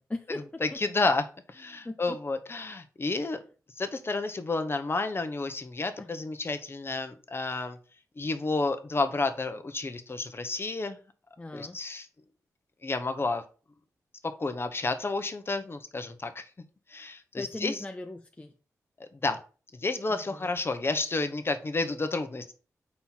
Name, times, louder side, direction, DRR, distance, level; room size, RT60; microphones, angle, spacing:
voice 1, 0.0-0.4 1.8-2.2 6.0-6.1 11.4-11.8 17.4-18.5 20.1-20.5, left 2 dB, 20° left, 6 dB, 0.6 m, -38 dB
voice 2, 0.6-3.4 3.8-7.8 8.2-11.0 11.5-12.1 12.8-13.4 14.4-16.5 16.9-17.8 19.0-19.4 19.7-22.5, left 3 dB, 40° left, 8 dB, 1.0 m, -31 dB
4.3 x 4.2 x 5.7 m, 0.37 s
cardioid pair, 50°, 6 cm